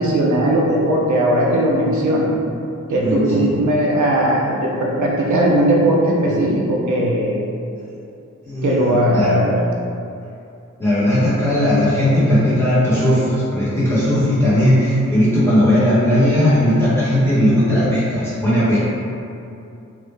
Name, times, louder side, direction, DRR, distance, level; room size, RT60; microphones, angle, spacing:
voice 1, 0.0-2.3 2.9-7.4 8.6-9.7, right 1 dB, 75° right, -3 dB, 0.6 m, -18 dB
voice 2, 3.0-3.5 7.8-7.9 8.4-9.3 10.8-18.8, equal, 10° left, -12 dB, 1.2 m, -17 dB
2.9 x 2.3 x 3.2 m, 2.6 s
wide cardioid pair, 125°, 30 cm